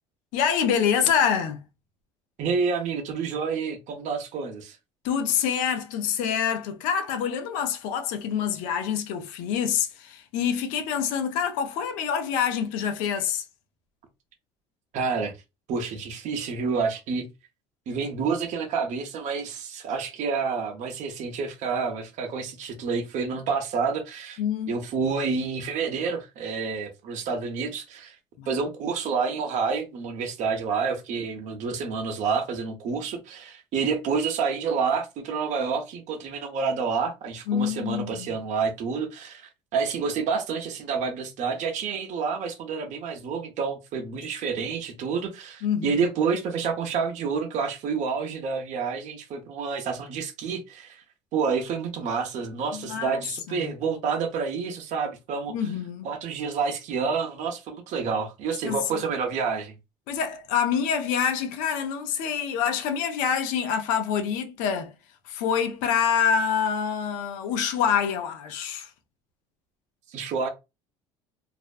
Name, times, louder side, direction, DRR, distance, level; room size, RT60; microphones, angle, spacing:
voice 1, 0.3-1.6 5.0-13.4 24.4-24.7 28.4-28.5 37.5-38.3 45.6-46.0 52.7-53.2 53.5-53.7 55.5-56.1 58.6-59.0 60.1-64.9 65.3-68.9, left 8 dB, 70° left, 0.6 m, -26 dB
voice 2, 2.4-4.8 14.9-15.3 15.7-17.3 17.9-24.4 24.7-28.2 28.5-51.0 51.3-55.5 56.0-59.7 70.1-70.5, right 5 dB, 55° right, 0.7 m, -28 dB
2.5 x 2.1 x 2.4 m
hypercardioid pair, 75°, 14 cm